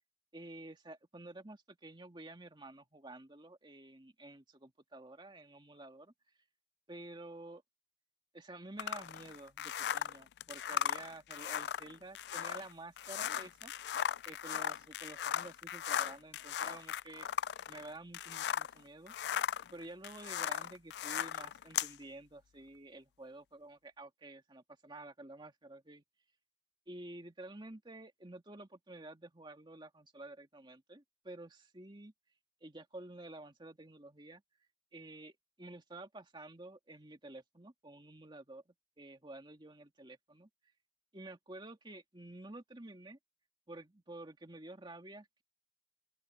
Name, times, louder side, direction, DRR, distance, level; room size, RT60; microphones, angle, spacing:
voice 1, 0.3-6.1 6.9-7.6 8.3-13.7 14.2-17.3 17.7-19.1 19.7-26.0 26.9-32.1 32.6-34.4 34.9-40.5 41.1-43.2 43.7-45.4, right 2 dB, 25° right, 2.0 m, -51 dB
sound 1, 8.8-18.8 19.1-21.9, left 9 dB, 60° left, 0.3 m, -37 dB
open air
head